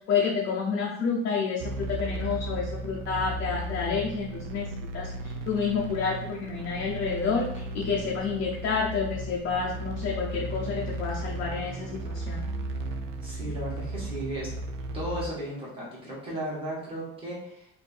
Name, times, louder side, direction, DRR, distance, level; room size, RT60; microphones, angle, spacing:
voice 1, 0.1-12.4, left 5 dB, 35° left, -4 dB, 0.6 m, -29 dB
sound 1, 1.6-15.3, right 2 dB, 75° right, 0.6 m, -35 dB
voice 2, 13.2-14.5 14.9-17.7, right 1 dB, 15° right, -6 dB, 1.4 m, -35 dB
3.5 x 2.6 x 4.1 m, 0.72 s
cardioid pair, 175°, 33 cm